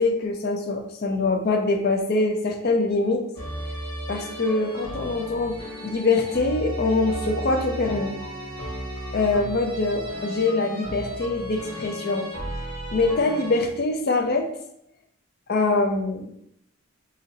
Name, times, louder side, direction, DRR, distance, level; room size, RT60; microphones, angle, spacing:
voice 1, 0.0-3.2 4.1-5.5 5.8-8.2 9.1-12.3 12.9-14.5 15.5-16.3, left 3 dB, 45° left, 4 dB, 0.4 m, -24 dB
sound 1, 3.3-13.6, right 1 dB, 25° left, 1.4 m, -34 dB
3.8 x 3.0 x 2.7 m, 0.73 s
head